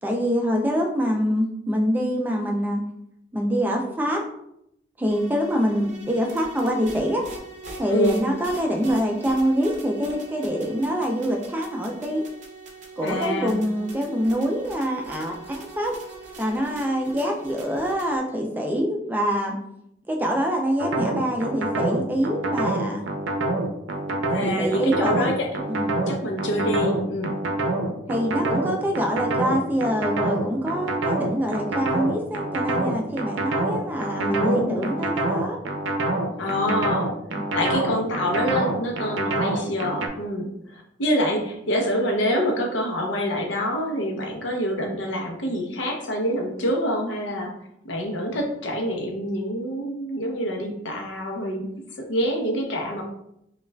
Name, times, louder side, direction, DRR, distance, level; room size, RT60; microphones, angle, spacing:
voice 1, 0.0-2.8 3.3-4.2 5.0-7.3 7.8-12.3 13.0-15.9 16.4-19.6 20.1-23.0 24.4-25.3 25.7-25.9 28.1-35.6 37.3-37.5, equal, 10° right, 1 dB, 0.4 m, -25 dB
sound 1, 5.1-18.2, right 3 dB, 40° right, 0.7 m, -42 dB
voice 2, 7.9-8.2 13.0-13.7 24.3-25.5 26.1-27.3 34.2-35.0 36.4-37.1 37.5-47.5 47.8-51.7 52.1-53.0, equal, 85° left, 2 dB, 0.7 m, -26 dB
sound 2, 20.8-40.1, right 2 dB, 85° right, 0.5 m, -26 dB
5.3 x 2.4 x 2.2 m, 0.78 s
head